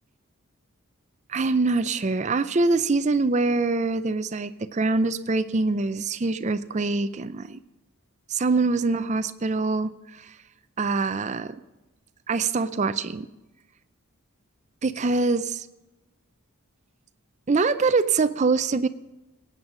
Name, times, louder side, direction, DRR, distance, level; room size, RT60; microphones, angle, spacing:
voice 1, 1.3-7.6 8.3-10.3 10.8-11.5 12.3-13.3 14.8-15.7 17.5-18.9, right 3 dB, 30° right, 12 dB, 0.4 m, -24 dB
17.0 x 8.9 x 3.8 m, 1.0 s
head